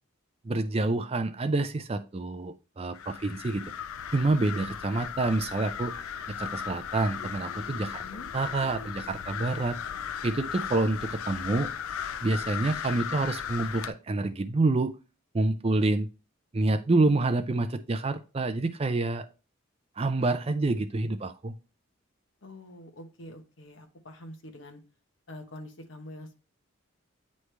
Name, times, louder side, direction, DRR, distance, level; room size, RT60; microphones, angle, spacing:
voice 1, 0.4-3.7 4.1-5.9 6.3-8.0 8.3-9.8 10.2-11.7 12.2-14.9 15.3-16.1 16.5-19.3 20.0-21.5, right 2 dB, 25° right, 10 dB, 0.4 m, -27 dB
sound 1, 2.9-13.9, left 8 dB, 85° left, 0.4 m, -37 dB
voice 2, 7.8-8.3 22.4-24.8 25.3-26.3, left 1 dB, 60° left, 5 dB, 1.0 m, -45 dB
9.3 x 3.2 x 3.2 m, 0.33 s
head